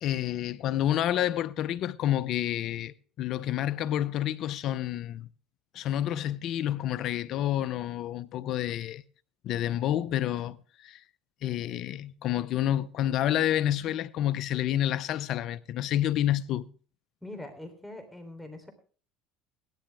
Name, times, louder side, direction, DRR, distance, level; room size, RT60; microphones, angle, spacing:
voice 1, 0.0-5.3 5.7-9.0 9.4-10.6 10.8-11.0 11.4-16.7, left 12 dB, 55° left, 0.7 m, -29 dB
voice 2, 17.2-18.7, left 1 dB, 5° left, 3.6 m, -43 dB
17.5 x 12.0 x 3.6 m
hypercardioid pair, 80°, 0 cm